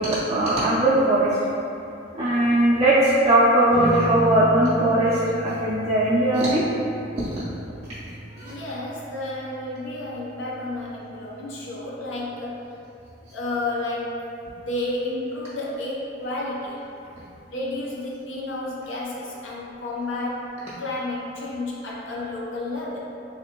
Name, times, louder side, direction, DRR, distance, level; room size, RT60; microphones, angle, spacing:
voice 1, 0.0-1.4 2.1-6.6 7.2-7.4 8.3-8.6, right 1 dB, 30° right, -9 dB, 0.3 m, -20 dB
sound 1, 3.7-14.5, equal, 25° left, 0.5 m, -36 dB
voice 2, 8.4-12.7 13.3-14.2 14.7-16.8 17.5-20.5 20.8-23.0, left 2 dB, 85° left, -4 dB, 0.6 m, -31 dB
3.3 x 2.5 x 2.8 m, 2.7 s
head